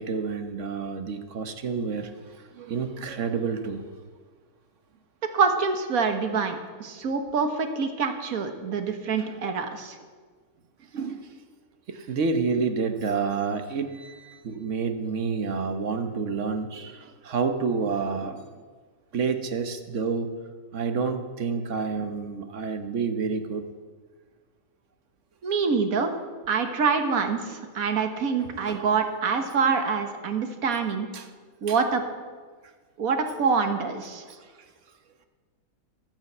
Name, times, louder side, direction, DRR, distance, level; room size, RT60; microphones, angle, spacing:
voice 1, 0.0-2.1 2.6-3.8 9.2-9.3 10.9-11.3 11.9-18.4 19.1-20.3 20.7-23.6 28.4-28.9 29.6-29.7 31.1-31.3 31.7-31.8, right 5 dB, 60° right, 8 dB, 1.3 m, -29 dB
voice 2, 5.3-10.0 25.4-26.1 26.5-31.1 31.6-32.0 33.0-34.2, right 5 dB, 75° right, 6 dB, 1.7 m, -25 dB
12.0 x 8.9 x 7.9 m, 1.5 s
omnidirectional pair, 1.5 m